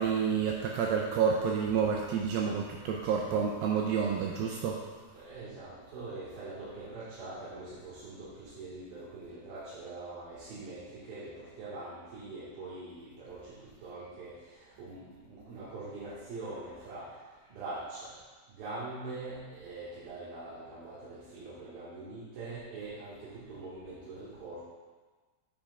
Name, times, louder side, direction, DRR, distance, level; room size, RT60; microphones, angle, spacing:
voice 1, 0.0-4.8, right 6 dB, 85° right, 0 dB, 2.1 m, -29 dB
voice 2, 5.1-13.4 13.8-14.3 14.8-15.0 15.3-17.1 17.5-18.1 18.5-24.6, right 2 dB, 70° right, -12 dB, 3.2 m, -43 dB
8.6 x 7.7 x 2.3 m, 1.4 s
omnidirectional pair, 4.7 m